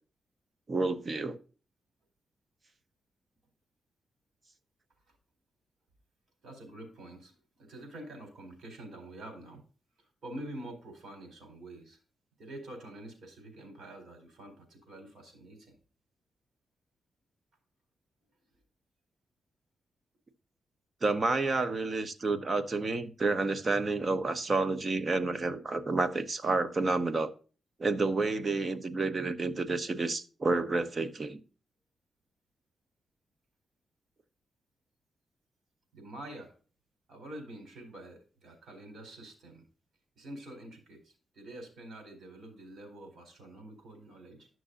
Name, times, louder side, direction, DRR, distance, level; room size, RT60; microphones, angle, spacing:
voice 1, 0.7-1.4 21.0-27.3 27.8-31.4, right 3 dB, 40° right, 1.0 m, -30 dB
voice 2, 6.4-9.6 10.0-12.0 12.4-15.8 35.9-36.6 37.1-39.7 40.2-44.5, right 1 dB, 70° right, 4.1 m, -47 dB
12.5 x 6.2 x 2.6 m
cardioid pair, 85°, 0 cm